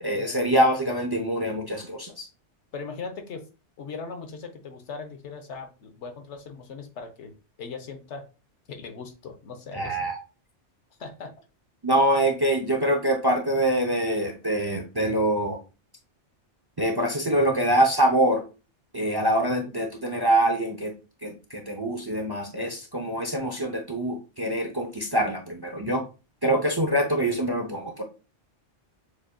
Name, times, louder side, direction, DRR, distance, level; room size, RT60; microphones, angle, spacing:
voice 1, 0.0-2.3 9.7-10.2 11.8-15.6 16.8-18.4 18.9-20.9 21.2-26.0 26.4-28.0, right 1 dB, 30° right, 2 dB, 0.5 m, -24 dB
voice 2, 2.7-3.5 3.8-7.3 7.6-8.3 8.7-10.0 11.0-11.3, left 5 dB, 80° left, 6 dB, 1.1 m, -39 dB
6.9 x 2.6 x 2.2 m, 0.31 s
omnidirectional pair, 1.2 m